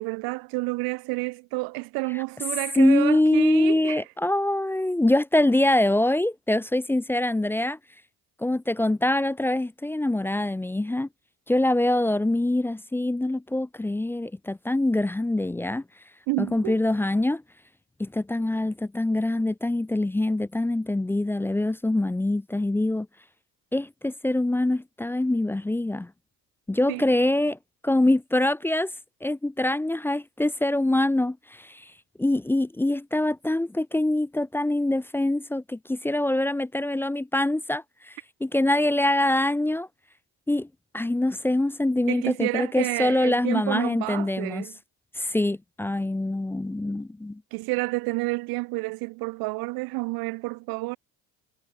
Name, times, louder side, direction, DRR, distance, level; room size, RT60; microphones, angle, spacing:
voice 1, 0.0-4.0 16.3-16.8 26.9-27.1 42.1-44.7 47.5-51.0, right 25 dB, 60° right, 0.5 m, -29 dB
voice 2, 2.8-7.8 8.4-11.1 11.5-15.8 16.4-17.4 18.0-23.1 23.7-26.1 26.7-27.6 27.8-28.9 29.2-31.9 32.2-39.9 40.5-40.7 40.9-44.7 45.2-47.4, left 1 dB, 5° left, 0.3 m, -24 dB
hypercardioid pair, 70°, 42 cm